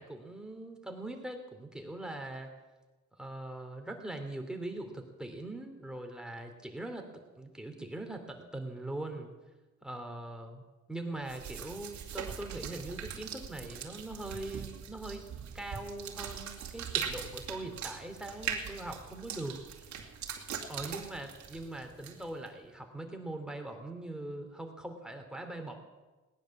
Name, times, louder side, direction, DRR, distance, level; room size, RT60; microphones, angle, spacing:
voice 1, 0.0-2.5 3.2-9.3 9.8-10.6 10.9-19.6 20.7-25.7, right 2 dB, ahead, 4 dB, 2.8 m, -41 dB
sound 1, 11.3-22.5, right 7 dB, 70° right, 2.3 m, -41 dB
18.0 x 10.5 x 7.2 m, 1.2 s
cardioid pair, 90°, 30 cm